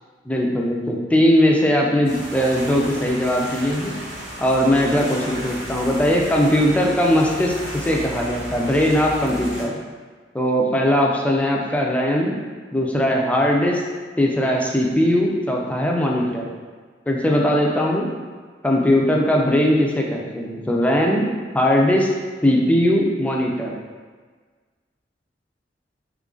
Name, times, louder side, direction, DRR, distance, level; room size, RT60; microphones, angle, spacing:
voice 1, 0.3-4.0 4.4-9.8 10.3-12.4 12.7-13.8 14.2-16.5 17.1-18.1 18.6-21.3 21.5-22.1 22.4-23.7, equal, 10° left, -1 dB, 0.3 m, -19 dB
sound 1, 2.0-9.6, equal, 65° right, 0.8 m, -34 dB
3.1 x 2.4 x 3.7 m, 1.5 s
head